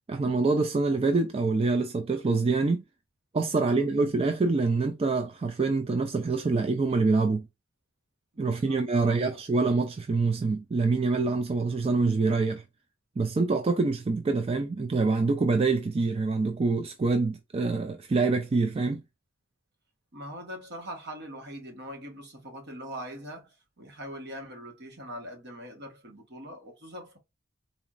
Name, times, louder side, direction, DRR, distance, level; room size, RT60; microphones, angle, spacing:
voice 1, 0.1-2.8 3.3-7.5 8.4-12.6 13.2-19.0, right 3 dB, 30° right, 0.4 m, -25 dB
voice 2, 8.3-9.4 20.1-27.2, equal, 60° right, 1.5 m, -42 dB
4.0 x 3.0 x 2.5 m
head